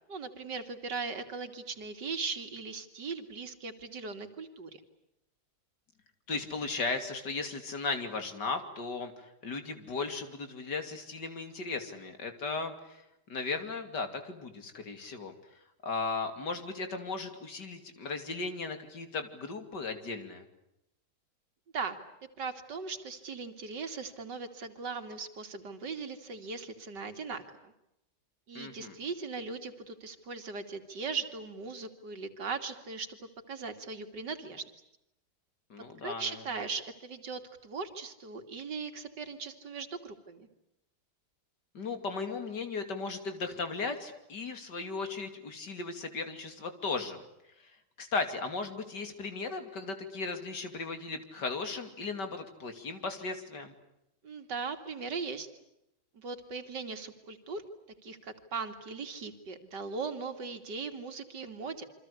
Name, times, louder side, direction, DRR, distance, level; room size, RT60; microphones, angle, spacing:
voice 1, 0.1-4.7 21.7-22.0 22.4-27.7 28.5-33.2 33.5-34.6 36.0-40.5 54.2-55.5 56.1-57.6 58.0-61.9, right 4 dB, 80° right, 7 dB, 2.9 m, -39 dB
voice 2, 6.3-13.0 13.3-15.3 15.8-20.4 28.5-28.9 35.7-36.4 41.7-47.2 47.6-47.7 48.0-53.7, left 4 dB, 80° left, 8 dB, 3.4 m, -36 dB
28.0 x 25.0 x 8.4 m, 0.85 s
omnidirectional pair, 1.8 m